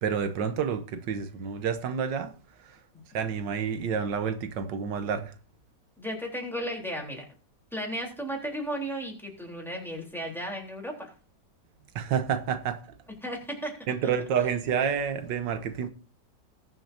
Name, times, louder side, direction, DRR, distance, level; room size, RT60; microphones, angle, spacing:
voice 1, 0.0-2.3 2.6-2.8 3.1-5.3 12.0-12.8 13.9-15.9, right 7 dB, 85° right, 1.6 m, -29 dB
voice 2, 6.0-7.3 7.7-11.1 13.2-13.7, equal, ahead, 3.4 m, -34 dB
20.5 x 7.0 x 2.7 m
omnidirectional pair, 1.9 m